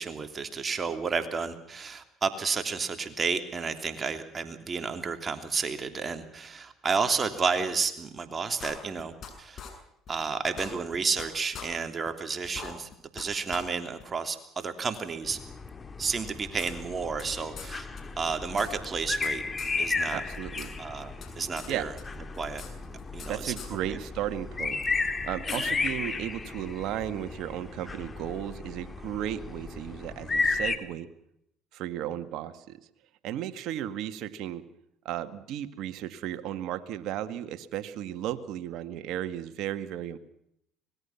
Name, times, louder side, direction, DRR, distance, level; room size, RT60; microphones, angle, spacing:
voice 1, 0.0-9.6 10.1-15.4 16.0-17.9 18.2-19.4 19.8-20.2 20.8-21.9 22.4-22.6 23.1-23.5 23.9-24.0, right 5 dB, 35° right, 7 dB, 3.1 m, -31 dB
sound 1, 8.6-9.3 9.6-9.7 10.1-10.2 10.5-11.3 11.5-11.7 12.1-12.2 12.4-13.3 13.5-13.6 14.0-14.1 14.9-15.0 16.1-17.3 17.6-17.7 18.0-18.1 18.3-19.3 19.6-19.7 20.1-20.7 21.0-21.7 22.0-23.3 23.6-23.7 24.8-24.9 25.5-25.6, left 7 dB, 50° left, 7.4 m, -42 dB
sound 2, 15.2-30.8, left 4 dB, 25° left, 2.7 m, -34 dB
voice 2, 20.1-20.7 21.7-21.9 23.3-24.8 25.2-31.1 31.7-32.8 33.2-34.7 35.0-40.2, right 11 dB, 65° right, 9 dB, 2.1 m, -34 dB
25.0 x 21.0 x 5.9 m, 0.77 s
hypercardioid pair, 70°, 0 cm